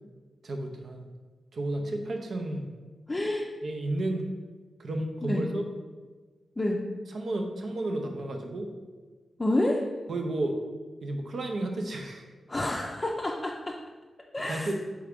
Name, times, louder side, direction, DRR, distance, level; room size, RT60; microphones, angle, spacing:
voice 1, 0.4-1.1 1.5-2.7 3.6-4.3 4.8-5.6 7.1-8.7 10.1-10.6 11.0-12.2 14.5-14.7, right 1 dB, 70° right, 3 dB, 0.5 m, -32 dB
voice 2, 3.1-3.5 5.2-5.5 6.6-6.8 9.4-9.8 12.5-13.8 14.3-14.7, left 1 dB, 25° left, -1 dB, 0.4 m, -28 dB
3.7 x 3.4 x 3.5 m, 1.3 s
cardioid pair, 65°, 0 cm